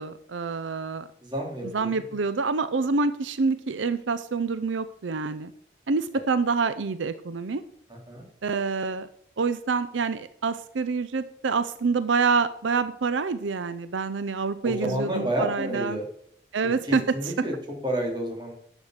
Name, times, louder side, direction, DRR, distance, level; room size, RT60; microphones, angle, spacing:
voice 1, 0.0-1.1 1.6-5.5 5.9-7.6 8.4-9.1 9.4-16.0 16.5-17.3, right 4 dB, 85° right, 13 dB, 0.6 m, -27 dB
voice 2, 1.2-2.0 7.9-8.3 14.6-16.0 16.8-17.5 17.8-18.6, right 1 dB, 25° right, 0 dB, 3.4 m, -30 dB
10.5 x 8.2 x 6.6 m, 0.67 s
head